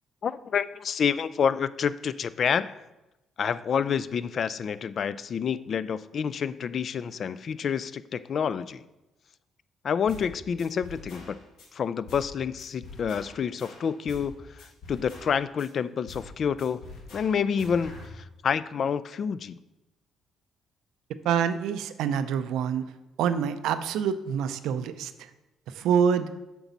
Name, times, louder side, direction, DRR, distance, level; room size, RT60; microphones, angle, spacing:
voice 1, 0.2-2.8 3.4-8.8 9.8-11.4 11.7-16.8 17.1-19.6, left 7 dB, 50° left, 16 dB, 0.3 m, -28 dB
sound 1, 10.1-10.3 10.6-11.7 12.1-12.3 12.6-14.3 14.6-15.7 16.1-16.3 16.6-18.1, left 2 dB, 80° left, 1.8 m, -45 dB
voice 2, 21.2-22.9 23.2-25.3 25.7-26.3, right 7 dB, 85° right, 11 dB, 0.5 m, -26 dB
8.1 x 6.0 x 4.0 m, 1.0 s
cardioid pair, 95°, 0 cm